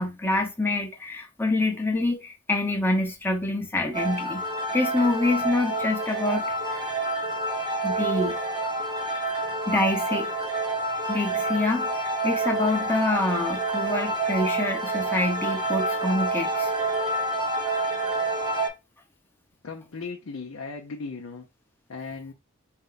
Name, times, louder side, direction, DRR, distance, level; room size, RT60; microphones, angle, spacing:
voice 1, 0.0-4.4 4.7-6.9 7.8-8.4 9.7-10.3 11.1-11.9 12.2-16.7, left 2 dB, 10° left, 0.8 m, -26 dB
sound 1, 3.9-18.7, right 2 dB, 20° right, 0.9 m, -28 dB
voice 2, 19.6-21.5 21.9-22.3, left 4 dB, 65° left, 0.6 m, -37 dB
4.5 x 2.1 x 3.9 m
head